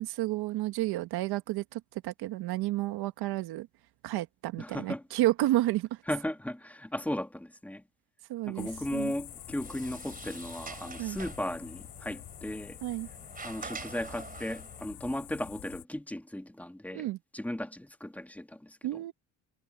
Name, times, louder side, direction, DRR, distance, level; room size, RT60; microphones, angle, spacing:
voice 1, 0.0-3.7 4.0-6.0 8.3-9.1 11.0-11.2 12.8-13.1 16.9-17.2 18.8-19.1, right 16 dB, 70° right, 1.7 m, -31 dB
voice 2, 4.6-5.0 6.1-7.8 8.5-12.8 13.4-17.1 17.3-19.0, left 1 dB, 5° left, 2.4 m, -36 dB
sound 1, 8.6-15.8, left 17 dB, 75° left, 2.6 m, -47 dB
Sliding door, 9.3-14.8, right 4 dB, 20° right, 3.7 m, -46 dB
cardioid pair, 100°, 39 cm